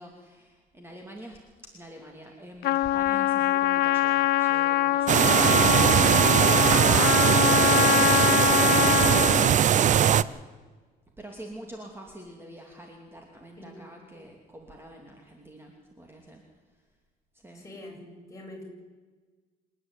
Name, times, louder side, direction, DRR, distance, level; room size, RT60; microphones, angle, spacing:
voice 1, 0.0-9.1 11.2-16.4 17.3-17.7, right 1 dB, 15° right, 1 dB, 2.8 m, -46 dB
Trumpet, 2.6-9.6, left 14 dB, 70° left, 0.6 m, -24 dB
sound 1, 5.1-10.2, right 9 dB, 45° right, 0.6 m, -20 dB
voice 2, 13.6-14.1 17.5-18.6, left 1 dB, 20° left, -2 dB, 8.0 m, -45 dB
28.0 x 10.0 x 9.7 m, 1.4 s
cardioid pair, 110°, 17 cm